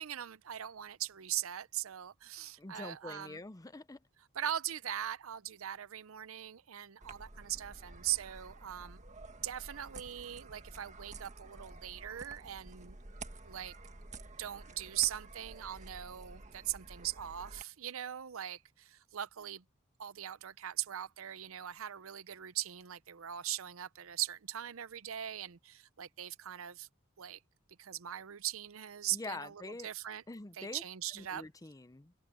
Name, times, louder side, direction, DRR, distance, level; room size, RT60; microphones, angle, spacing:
voice 1, 0.0-3.4 4.3-9.0 9.4-13.0 13.4-13.7 14.4-19.6 20.0-26.9 27.2-27.4 27.8-30.2 30.6-31.4, right 12 dB, 75° right, 0.6 m, -40 dB
voice 2, 2.6-4.0 29.1-29.9 30.3-30.8 31.1-32.1, left 2 dB, 15° left, 0.6 m, -45 dB
sound 1, 7.0-17.6, right 3 dB, 35° right, 1.6 m, -51 dB
head